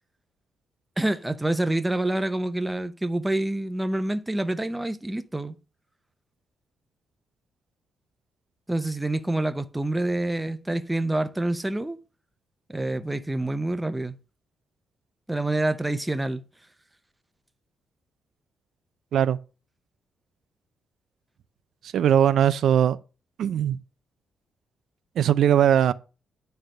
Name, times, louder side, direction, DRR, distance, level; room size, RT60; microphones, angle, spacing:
voice 1, 1.0-5.5 8.7-12.0 12.7-14.2 15.3-16.4, right 1 dB, 10° right, 0.7 m, -27 dB
voice 2, 21.9-23.0 23.4-23.8 25.2-25.9, right 9 dB, 70° right, 0.4 m, -20 dB
9.9 x 3.4 x 6.5 m
cardioid pair, 120°, 0 cm